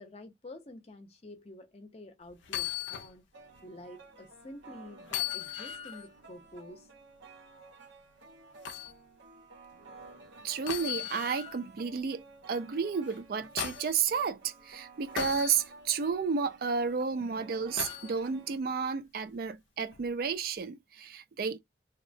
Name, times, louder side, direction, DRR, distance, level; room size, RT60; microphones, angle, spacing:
voice 1, 0.0-3.2 3.6-6.9, left 1 dB, 35° left, 0.5 m, -49 dB
sound 1, 2.4-3.1 3.6-3.7 5.1-6.1 8.6-8.9 10.7-11.6 13.1-14.0 15.2-15.6 17.8-18.1 19.9-20.1, left 10 dB, 85° left, 0.4 m, -36 dB
sound 2, 3.3-18.6, right 3 dB, 90° right, 0.8 m, -53 dB
voice 2, 10.4-21.6, right 6 dB, 55° right, 0.4 m, -32 dB
2.8 x 2.0 x 2.5 m
head